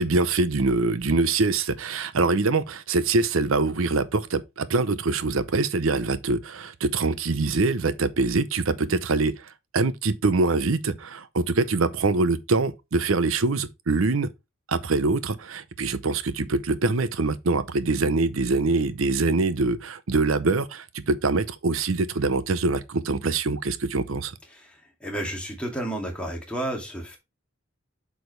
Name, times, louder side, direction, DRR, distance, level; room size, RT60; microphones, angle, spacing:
voice 1, 0.0-14.3 14.7-24.3, right 3 dB, 70° right, 0.7 m, -24 dB
voice 2, 24.5-27.2, right 1 dB, 5° left, 2.4 m, -32 dB
7.9 x 5.2 x 3.2 m
head